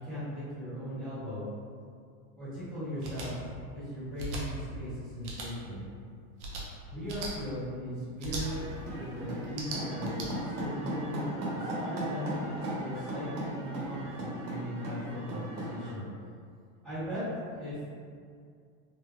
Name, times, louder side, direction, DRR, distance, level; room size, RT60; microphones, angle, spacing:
voice 1, 0.0-1.5 2.4-5.8 6.9-16.0 16.8-17.9, equal, ahead, -22 dB, 0.5 m, -38 dB
sound 1, 3.0-3.3 4.1-4.4 5.2-5.5 6.4-6.6 7.1-7.3 8.2-8.4 9.4-10.3, right 2 dB, 50° right, 0.7 m, -38 dB
sound 2, 8.3-15.9, right 1 dB, 75° right, 1.3 m, -37 dB
3.4 x 2.1 x 3.1 m, 2.2 s
supercardioid pair, 175°, 44 cm